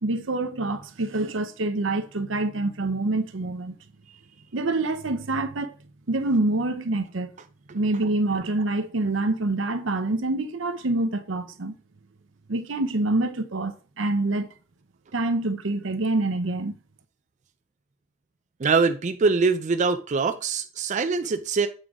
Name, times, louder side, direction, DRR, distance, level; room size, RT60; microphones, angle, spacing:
voice 1, 0.0-3.8 4.5-5.7 6.1-7.3 7.7-11.7 12.5-14.5 15.1-16.7, right 2 dB, 80° right, 0.8 m, -26 dB
voice 2, 18.6-21.7, right 4 dB, 40° right, 0.4 m, -23 dB
7.9 x 3.8 x 4.7 m
head